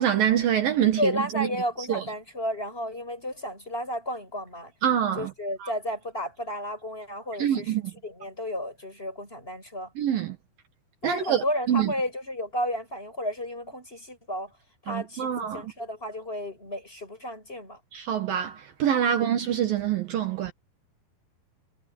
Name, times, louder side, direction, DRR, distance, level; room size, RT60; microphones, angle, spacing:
voice 1, 0.0-1.5 1.9-2.0 4.8-5.3 5.6-5.7 7.4-7.8 10.0-10.4 11.0-11.9 14.9-15.7 17.9-20.5, right 9 dB, 65° right, 3.1 m, -25 dB
voice 2, 1.0-4.7 5.1-9.9 11.0-14.5 14.8-17.8 19.1-19.2, equal, 15° left, 7.0 m, -32 dB
omnidirectional pair, 4.5 m